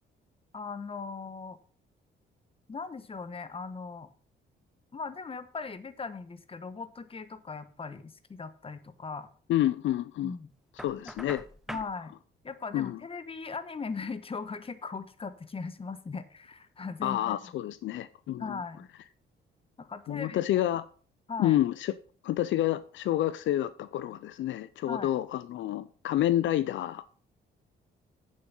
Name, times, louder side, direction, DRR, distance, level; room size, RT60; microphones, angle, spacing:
voice 1, 0.5-1.6 2.7-4.1 4.9-9.3 10.2-10.5 11.7-12.1 12.4-17.4 18.4-18.9 19.8-20.4 21.3-21.6 24.9-25.1, left 4 dB, 30° left, 1.1 m, -39 dB
voice 2, 9.5-10.3 10.8-11.4 12.7-13.0 17.0-18.6 20.1-20.8 21.4-22.0 22.2-27.0, left 13 dB, 75° left, 0.5 m, -29 dB
Knock, 10.8-11.9, equal, ahead, 0.7 m, -43 dB
8.7 x 7.3 x 5.6 m
cardioid pair, 90°, 20 cm